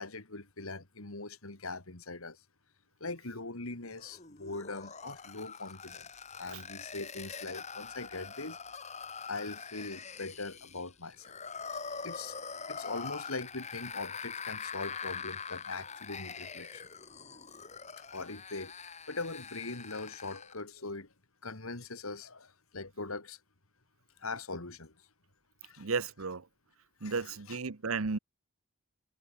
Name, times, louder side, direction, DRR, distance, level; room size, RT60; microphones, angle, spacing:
voice 1, 0.0-2.4 3.0-6.1 6.3-8.6 9.3-16.9 18.1-21.1 21.4-23.4 24.2-24.9 25.6-25.9 27.0-27.6, left 3 dB, 85° left, 3.0 m, -41 dB
sound 1, 4.0-20.6, left 5 dB, 30° left, 3.8 m, -44 dB
voice 2, 25.8-26.5 27.0-28.2, right 4 dB, 80° right, 0.9 m, -34 dB
head